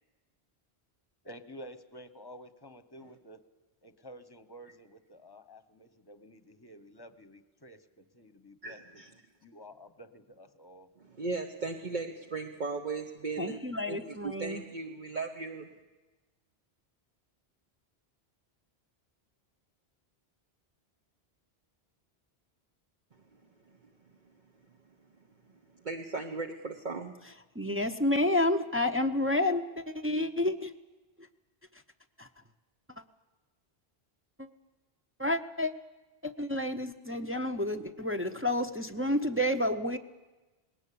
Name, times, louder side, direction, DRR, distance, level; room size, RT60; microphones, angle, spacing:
voice 1, 1.2-3.4 3.8-9.0 9.4-10.9, equal, 20° left, 1.1 m, -51 dB
voice 2, 8.6-9.1 11.1-13.6 13.9-15.7 25.8-27.1, right 3 dB, 50° right, 1.2 m, -37 dB
voice 3, 13.4-14.6 27.5-30.7 31.2-31.3 32.2-32.3 34.4-34.5 35.2-35.7 36.2-40.0, left 1 dB, 15° right, 0.7 m, -30 dB
20.0 x 18.0 x 8.6 m
omnidirectional pair, 1.1 m